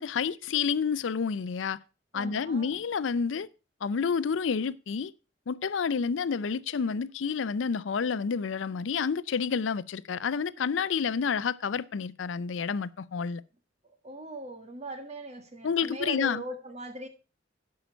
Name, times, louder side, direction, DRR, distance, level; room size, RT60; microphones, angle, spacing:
voice 1, 0.0-1.8 2.1-3.5 3.8-5.1 5.5-13.4 15.6-16.4, left 6 dB, 80° left, 0.5 m, -29 dB
voice 2, 2.1-2.7 14.0-17.1, right 2 dB, 35° right, 1.8 m, -39 dB
11.5 x 5.7 x 5.1 m
head